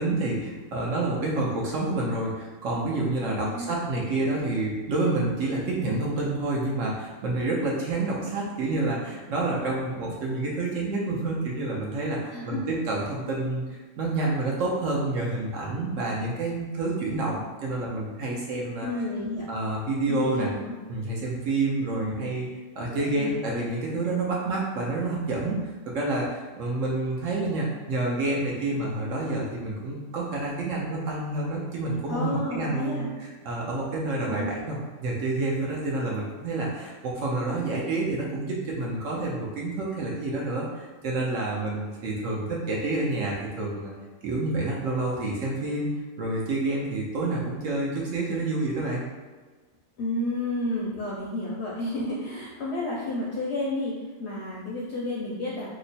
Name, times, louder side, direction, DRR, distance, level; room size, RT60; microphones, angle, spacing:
voice 1, 0.0-18.9 19.5-20.5 20.9-22.5 22.8-43.9 44.2-45.9 46.2-49.0, right 2 dB, 65° right, -3 dB, 0.9 m, -28 dB
voice 2, 3.2-3.7 12.3-12.8 18.8-19.5 20.1-20.7 21.9-22.4 22.9-23.3 32.1-33.1 34.3-34.5 50.0-55.7, left 1 dB, 65° left, -5 dB, 0.7 m, -31 dB
2.9 x 2.0 x 4.0 m, 1.3 s
omnidirectional pair, 1.5 m